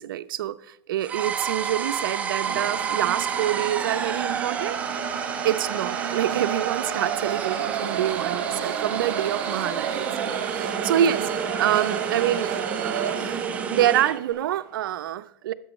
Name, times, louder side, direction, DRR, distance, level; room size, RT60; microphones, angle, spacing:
voice 1, 0.0-5.0 5.4-11.3 11.6-12.5 13.7-15.5, right 11 dB, 70° right, 0.5 m, -26 dB
sound 1, 1.0-14.2, right 6 dB, 10° right, 0.4 m, -30 dB
sound 2, 2.4-14.7, right 9 dB, 55° right, 1.1 m, -32 dB
11.5 x 7.8 x 3.1 m
supercardioid pair, 155°, 12 cm